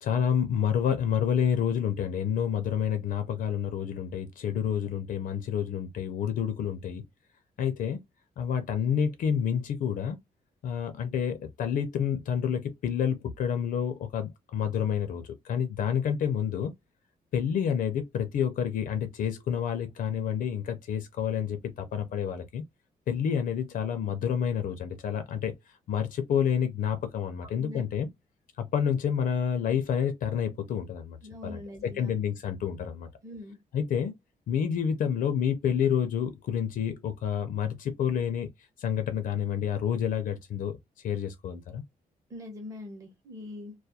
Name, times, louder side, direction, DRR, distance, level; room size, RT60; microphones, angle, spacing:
voice 1, 0.0-7.0 7.6-8.0 8.4-10.2 10.6-16.7 17.3-22.6 23.1-25.6 25.9-28.1 28.6-31.2 31.4-33.1 33.7-34.1 34.5-38.5 38.8-40.8 41.0-41.8, left 8 dB, 65° left, 0.4 m, -29 dB
voice 2, 27.4-27.8 31.2-32.1 33.2-33.6 42.3-43.7, left 2 dB, 20° right, 0.6 m, -42 dB
2.3 x 2.2 x 2.7 m
wide cardioid pair, 180°, 15 cm